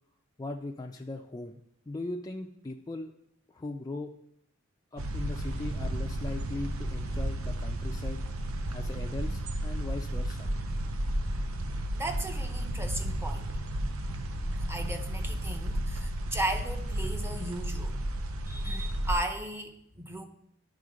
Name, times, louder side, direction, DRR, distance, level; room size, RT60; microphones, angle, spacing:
voice 1, 0.4-1.6 1.9-3.1 3.5-4.2 4.9-8.2 8.7-10.5, left 2 dB, 20° left, 2 dB, 0.3 m, -39 dB
sound 1, 5.0-19.2, right 1 dB, 90° right, 0.7 m, -33 dB
voice 2, 11.9-13.5 14.7-17.9 18.5-20.2, right 1 dB, 10° right, 5 dB, 0.7 m, -36 dB
10.5 x 3.7 x 5.0 m, 0.73 s
head